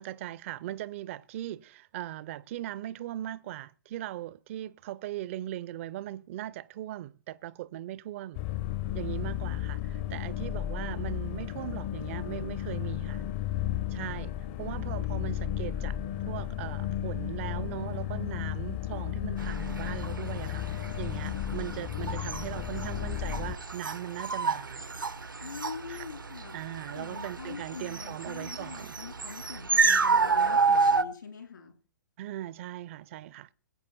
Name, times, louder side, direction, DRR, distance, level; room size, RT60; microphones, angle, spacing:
voice 1, 0.0-8.4 8.9-13.2 13.9-14.3 14.6-16.0 16.3-24.8 25.9-26.1 26.5-28.9 32.2-33.5, right 13 dB, 40° right, 0.6 m, -39 dB
sound 1, 8.4-23.6, left 12 dB, 35° left, 0.8 m, -34 dB
voice 2, 8.8-9.6 10.1-10.4 25.4-26.6 26.9-31.7, left 6 dB, 70° left, 3.4 m, -44 dB
sound 2, 19.4-31.0, right 4 dB, 80° right, 0.8 m, -30 dB
21.0 x 8.4 x 4.1 m
figure-of-eight pair, 115°, 11 cm